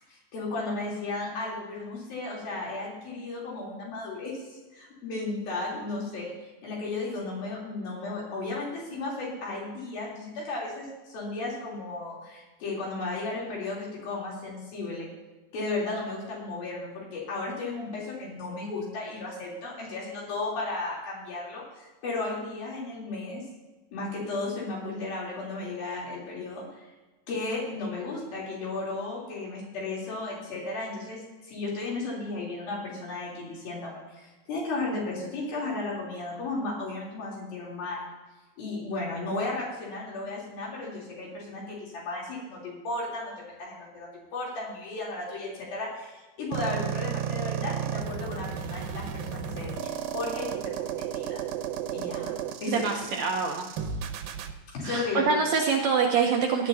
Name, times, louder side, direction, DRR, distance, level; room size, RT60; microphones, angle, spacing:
voice 1, 0.1-15.1 15.5-23.4 23.9-26.7 27.3-38.1 38.6-51.4 51.9-52.3 52.6-52.8 54.7-55.4, left 3 dB, 85° left, -4 dB, 5.3 m, -34 dB
sound 1, 46.5-54.5, right 8 dB, 90° right, 2.7 m, -33 dB
voice 2, 52.7-53.7 54.8-56.7, right 5 dB, 70° right, 1 dB, 1.8 m, -25 dB
18.5 x 11.0 x 2.8 m, 1.2 s
omnidirectional pair, 4.1 m